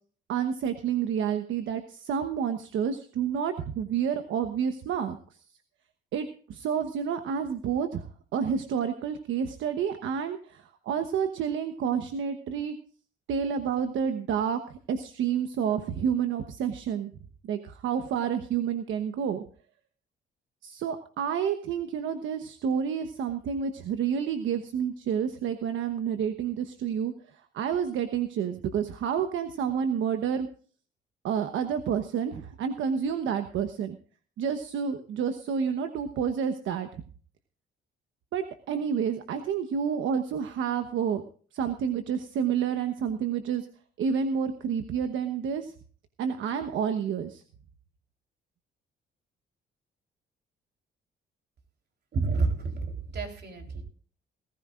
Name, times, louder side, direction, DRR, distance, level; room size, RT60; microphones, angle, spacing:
voice 1, 0.3-5.4 6.1-12.7 13.3-17.1 17.4-19.4 20.6-30.5 31.2-34.0 34.4-36.9 38.3-41.2 41.5-43.7 44.0-45.7 46.2-47.4, right 7 dB, 80° right, 8 dB, 1.1 m, -29 dB
voice 2, 52.1-53.8, right 3 dB, 55° right, 3 dB, 3.7 m, -29 dB
20.0 x 14.5 x 2.5 m, 0.43 s
cardioid pair, 90°, 20 cm